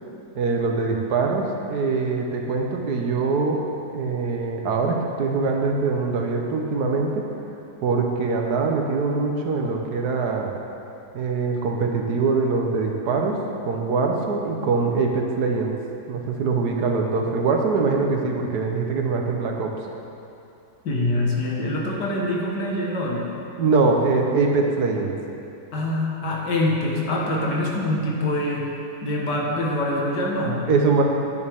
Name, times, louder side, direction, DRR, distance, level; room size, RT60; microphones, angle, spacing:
voice 1, 0.3-3.6 3.9-7.2 7.8-10.5 11.1-13.4 13.6-15.8 16.1-19.7 23.6-25.1 30.7-31.0, right 4 dB, 70° right, 1 dB, 1.4 m, -23 dB
voice 2, 20.8-23.3 25.7-28.7 29.0-30.7, left 1 dB, 85° left, -2 dB, 2.0 m, -24 dB
10.0 x 9.5 x 3.5 m, 2.7 s
omnidirectional pair, 1.8 m